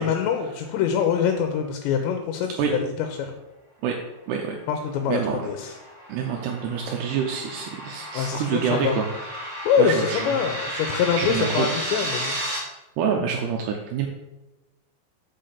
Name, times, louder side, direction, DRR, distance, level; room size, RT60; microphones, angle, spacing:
voice 1, 0.0-3.3 4.7-5.8 8.1-9.0 9.6-12.3, left 7 dB, 80° left, 4 dB, 3.0 m, -24 dB
sound 1, 4.9-12.6, equal, 40° right, 0.6 m, -33 dB
voice 2, 5.1-5.4 6.1-9.1 9.8-10.2 10.8-11.7 13.0-14.1, right 7 dB, 80° right, 1 dB, 2.5 m, -27 dB
6.0 x 5.8 x 6.6 m, 0.99 s
omnidirectional pair, 5.2 m